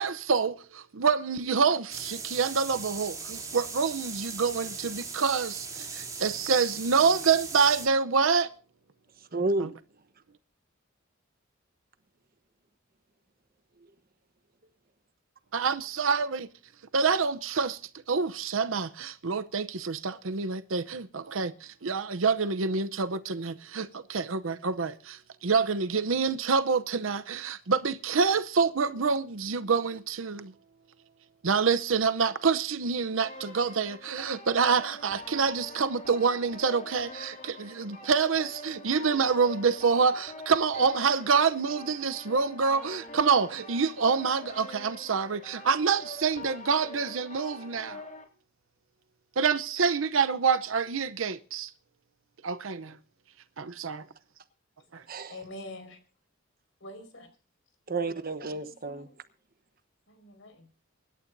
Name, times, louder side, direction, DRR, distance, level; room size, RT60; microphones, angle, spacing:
voice 1, 0.0-8.5 9.6-9.7 15.5-16.5 16.9-17.8 18.1-30.5 31.4-48.0 49.4-51.7 52.4-53.0 53.6-54.0 54.9-55.0, right 5 dB, 75° right, 0.7 m, -27 dB
sound 1, 1.9-7.9, right 4 dB, 15° right, 3.2 m, -39 dB
voice 2, 9.2-9.7 55.1-55.4 57.9-59.1, right 2 dB, 45° right, 1.1 m, -31 dB
sound 2, 33.2-48.2, left 2 dB, 40° left, 3.6 m, -45 dB
voice 3, 55.3-56.0 56.8-57.3 58.5-59.1 60.1-60.7, left 1 dB, 70° left, 4.8 m, -45 dB
24.0 x 12.0 x 2.7 m
head